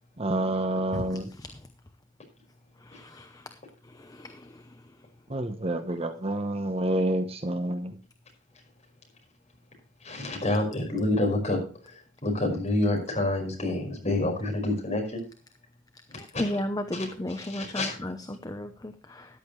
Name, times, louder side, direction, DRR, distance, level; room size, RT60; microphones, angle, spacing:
voice 1, 0.2-1.3 5.3-7.9, right 1 dB, 30° right, 8 dB, 1.0 m, -28 dB
voice 2, 2.9-3.3 4.2-4.3 16.2-19.3, left 1 dB, 20° left, 8 dB, 0.7 m, -33 dB
voice 3, 10.0-11.6 11.8-15.2 16.1-16.4 16.9-17.0 17.5-18.0, left 2 dB, 35° left, 1 dB, 5.2 m, -28 dB
14.0 x 10.5 x 3.2 m, 0.37 s
head